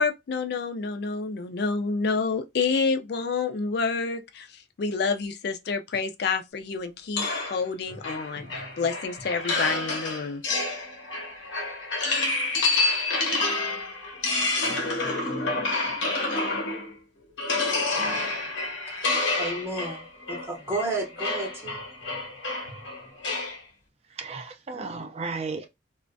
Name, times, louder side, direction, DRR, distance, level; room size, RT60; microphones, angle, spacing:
voice 1, 0.0-10.4, left 4 dB, 55° left, 0.4 m, -28 dB
sound 1, 7.2-17.0 17.4-23.6, left 3 dB, 90° left, 0.9 m, -28 dB
voice 2, 18.9-21.8, right 2 dB, 15° right, 0.8 m, -33 dB
voice 3, 24.1-25.7, right 4 dB, 35° right, 0.4 m, -34 dB
2.4 x 2.1 x 2.5 m
head